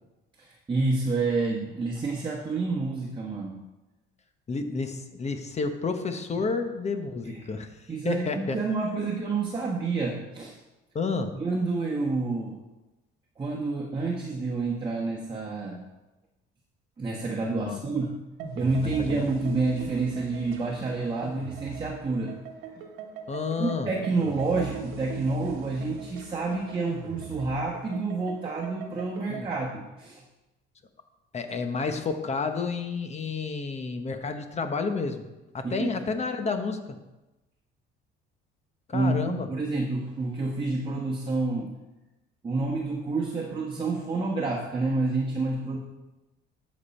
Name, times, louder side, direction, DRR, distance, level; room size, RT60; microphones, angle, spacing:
voice 1, 0.4-3.6 7.2-7.5 7.9-10.6 11.4-12.6 13.4-15.8 17.0-18.2 18.5-22.3 23.6-30.2 35.6-35.9 38.9-41.7 42.4-45.8, right 3 dB, 20° right, -3 dB, 1.2 m, -29 dB
voice 2, 4.5-7.7 8.0-8.6 9.0-9.1 10.9-11.4 17.7-17.8 19.0-19.3 23.3-23.9 29.3-29.5 31.3-35.3 35.5-37.0 38.9-39.5, left 4 dB, 30° left, 8 dB, 0.9 m, -30 dB
sound 1, 18.4-29.7, right 6 dB, 85° right, 1.2 m, -41 dB
12.5 x 5.3 x 4.3 m, 1.0 s
cardioid pair, 105°, 21 cm